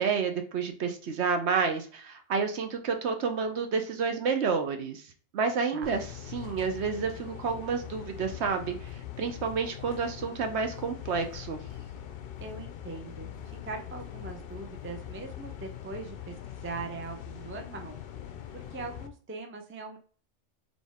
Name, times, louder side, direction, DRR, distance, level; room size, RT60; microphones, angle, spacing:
voice 1, 0.0-6.1 6.3-11.6, right 5 dB, 65° right, 6 dB, 0.9 m, -30 dB
sound 1, 5.8-19.1, left 10 dB, 60° left, 0.6 m, -42 dB
voice 2, 12.4-16.3 16.6-18.0 18.5-20.0, right 3 dB, 15° right, 4 dB, 0.4 m, -41 dB
4.1 x 3.6 x 3.4 m, 0.43 s
omnidirectional pair, 1.3 m